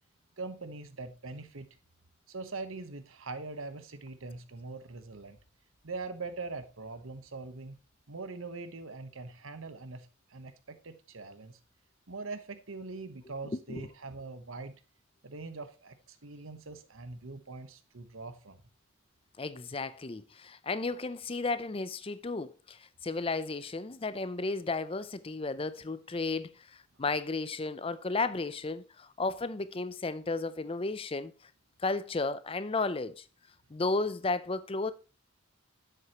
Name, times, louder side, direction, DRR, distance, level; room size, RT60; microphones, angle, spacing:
voice 1, 0.4-1.7 2.3-5.4 5.8-7.8 8.1-11.6 12.1-14.8 15.2-18.6, right 3 dB, 80° right, 1.1 m, -42 dB
voice 2, 19.4-31.3 31.8-33.2 33.7-34.9, left 3 dB, 25° left, 0.5 m, -33 dB
9.4 x 7.8 x 3.0 m
head